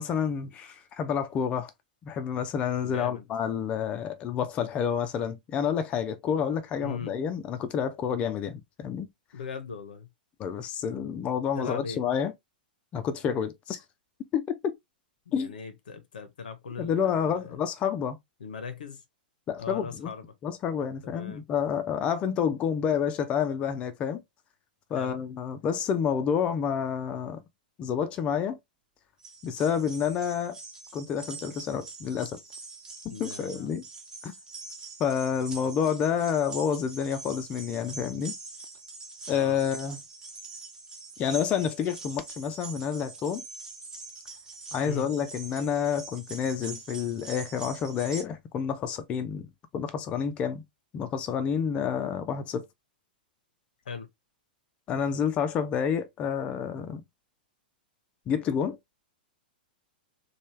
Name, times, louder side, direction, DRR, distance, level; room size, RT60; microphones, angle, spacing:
voice 1, 0.0-1.7 2.0-9.1 10.4-12.3 12.9-13.8 14.3-14.7 15.3-15.5 16.8-18.2 19.5-20.1 20.4-24.2 24.9-27.4 27.8-28.6 29.4-30.6 30.9-32.4 33.0-33.8 34.2-34.4 35.0-38.4 39.3-40.0 41.2-43.4 44.7-49.5 49.7-50.6 50.9-52.7 54.9-57.0 58.3-58.8, left 7 dB, 25° left, 0.4 m, -29 dB
voice 2, 2.8-3.2 6.8-7.2 9.3-10.1 11.6-12.0 15.3-17.6 18.4-19.0 19.6-20.3 21.0-21.4 25.0-25.2 33.1-33.7 39.3-39.6 44.9-45.1 53.9-54.1, left 6 dB, 60° left, 0.6 m, -39 dB
sound 1, 29.2-48.2, right 3 dB, 15° right, 0.7 m, -44 dB
3.2 x 2.3 x 3.0 m
figure-of-eight pair, 100°, 5 cm